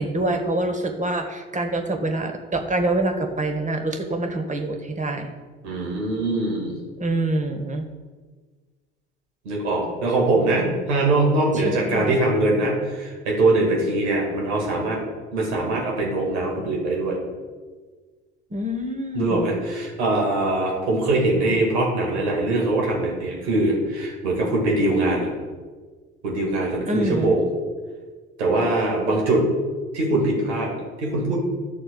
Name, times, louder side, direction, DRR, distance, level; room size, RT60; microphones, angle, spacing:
voice 1, 0.0-5.3 7.0-7.9 11.5-12.2 18.5-19.5 26.9-27.3, right 1 dB, 20° right, 5 dB, 1.5 m, -26 dB
voice 2, 5.6-6.8 9.4-15.0 15.3-17.2 19.1-25.3 26.2-27.4 28.4-29.5 29.9-31.4, right 2 dB, 75° right, -1 dB, 2.4 m, -22 dB
12.0 x 4.2 x 7.0 m, 1.4 s
figure-of-eight pair, 55°, 34 cm